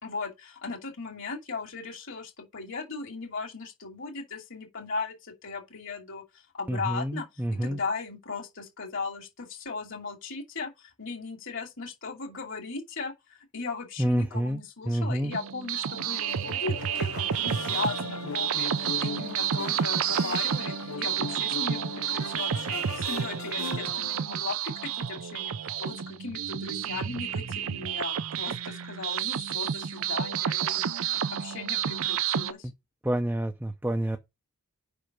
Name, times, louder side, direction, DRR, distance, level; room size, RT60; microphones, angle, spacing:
voice 1, 0.0-6.2 6.5-13.1 13.5-32.7, left 4 dB, 65° left, 2.7 m, -37 dB
voice 2, 6.7-7.8 14.0-14.6 14.9-15.3 32.6-32.7 33.0-34.2, right 1 dB, 10° right, 0.5 m, -28 dB
sound 1, 15.3-32.5, right 9 dB, 75° right, 0.5 m, -30 dB
sound 2, 16.0-24.2, left 5 dB, 85° left, 0.7 m, -39 dB
5.6 x 5.1 x 5.9 m
head